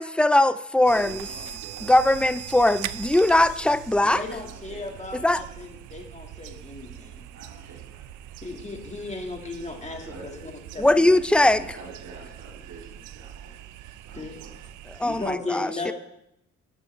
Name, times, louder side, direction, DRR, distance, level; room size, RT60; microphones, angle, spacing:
voice 1, 0.0-1.3 1.9-4.2 5.2-5.4 10.8-11.6 15.0-15.9, left 1 dB, 5° left, 14 dB, 0.4 m, -20 dB
voice 2, 0.9-2.0 4.2-5.0 7.3-8.0 10.0-10.3 11.3-13.6 14.0-14.6, right 3 dB, 70° right, -2 dB, 3.2 m, -45 dB
sound 1, 0.9-15.4, right 13 dB, 85° right, 0.5 m, -41 dB
voice 3, 4.0-7.2 8.4-11.2 14.1-14.4 15.0-15.9, left 3 dB, 25° left, 2 dB, 2.1 m, -36 dB
11.0 x 9.6 x 3.5 m, 0.79 s
cardioid pair, 90°, 30 cm